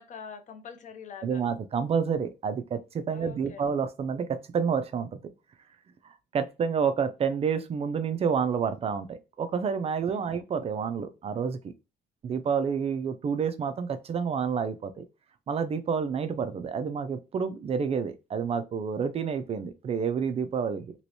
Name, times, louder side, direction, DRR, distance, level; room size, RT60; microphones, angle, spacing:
voice 1, 0.0-1.4 3.1-3.6 10.1-10.3, left 7 dB, 50° left, 0.7 m, -44 dB
voice 2, 1.2-5.2 6.0-11.7 12.2-15.0 15.5-20.9, right 6 dB, 35° right, 0.4 m, -29 dB
3.0 x 3.0 x 2.7 m
cardioid pair, 110°, 17 cm